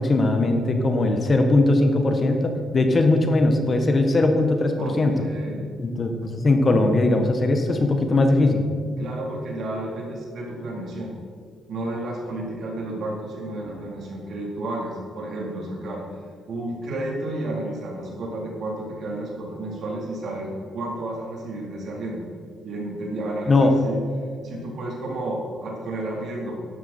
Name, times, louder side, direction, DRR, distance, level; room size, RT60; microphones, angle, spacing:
voice 1, 0.0-5.2 5.8-8.6 23.5-23.7, left 2 dB, 35° left, 5 dB, 1.5 m, -20 dB
voice 2, 4.8-5.6 9.0-11.1 11.7-16.0 16.5-22.3 22.6-24.0 24.4-26.6, right 1 dB, 65° right, -3 dB, 3.8 m, -31 dB
12.5 x 11.5 x 4.5 m, 2.2 s
cardioid pair, 90°, 0 cm